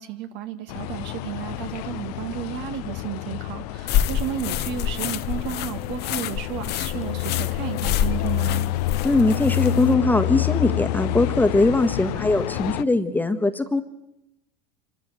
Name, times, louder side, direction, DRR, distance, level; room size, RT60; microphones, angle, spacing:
voice 1, 0.0-8.7, right 10 dB, 60° right, 8 dB, 2.1 m, -33 dB
sound 1, 0.7-12.8, left 15 dB, 75° left, 0.8 m, -28 dB
sound 2, 3.9-9.9, left 10 dB, 55° left, 1.1 m, -28 dB
voice 2, 9.0-13.8, left 2 dB, 10° left, 7 dB, 1.5 m, -21 dB
25.5 x 13.0 x 9.1 m, 0.87 s
supercardioid pair, 100°, 20 cm